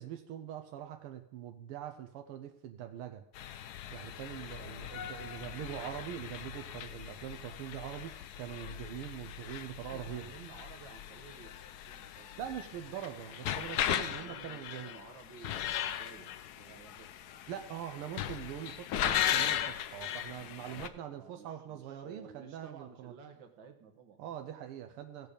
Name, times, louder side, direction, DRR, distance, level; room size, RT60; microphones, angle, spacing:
voice 1, 0.0-3.2 3.9-10.3 12.4-14.9 17.5-23.1 24.2-25.3, right 10 dB, 85° right, 6 dB, 1.6 m, -43 dB
sound 1, 3.3-20.9, left 10 dB, 80° left, 0.8 m, -38 dB
voice 2, 4.5-5.7 9.9-12.3 14.0-17.4 20.6-24.4, right 6 dB, 60° right, 6 dB, 1.8 m, -55 dB
16.5 x 6.8 x 5.0 m, 0.75 s
omnidirectional pair, 2.4 m